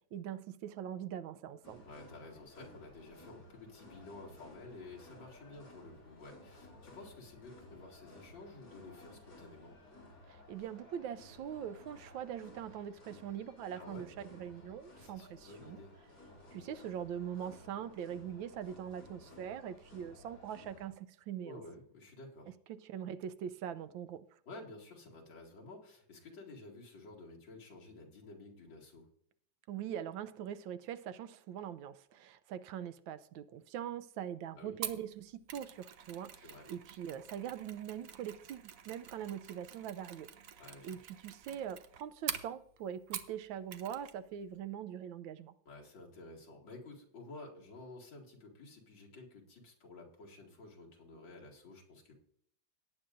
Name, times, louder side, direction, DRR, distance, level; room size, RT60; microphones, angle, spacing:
voice 1, 0.0-1.8 10.3-15.8 16.5-21.6 22.7-24.4 29.7-40.3 40.8-45.5, right 9 dB, 80° right, 1.4 m, -42 dB
sound 1, 1.6-20.9, left 1 dB, 45° left, 6.4 m, -57 dB
voice 2, 1.8-9.7 13.7-14.0 14.9-15.9 21.4-22.5 24.5-29.1 34.5-34.7 36.4-36.7 40.6-41.0 45.7-52.1, left 2 dB, 70° left, 2.9 m, -52 dB
Mechanisms, 34.8-43.4 43.7-44.2 44.4-44.6, right 9 dB, 60° right, 0.9 m, -46 dB
18.0 x 9.0 x 2.6 m
omnidirectional pair, 2.1 m